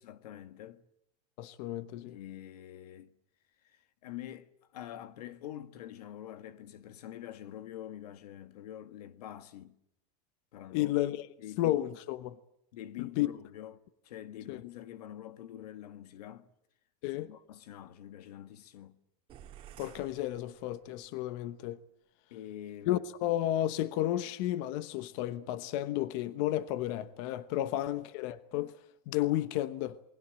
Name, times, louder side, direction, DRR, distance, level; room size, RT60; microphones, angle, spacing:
voice 1, 0.0-0.8 2.1-3.1 3.6-9.8 10.5-10.9 11.4-11.8 12.7-13.7 14.0-16.5 17.2-18.9 22.3-23.0 27.6-27.7, left 12 dB, 85° left, 1.8 m, -46 dB
voice 2, 1.4-2.2 10.7-11.3 11.6-12.4 13.0-13.3 14.5-14.6 17.0-17.3 19.8-21.8 22.9-30.0, left 14 dB, 50° left, 1.1 m, -32 dB
sound 1, 19.3-21.1, right 10 dB, 25° right, 2.5 m, -53 dB
28.5 x 20.5 x 7.6 m
supercardioid pair, 160°, 20 cm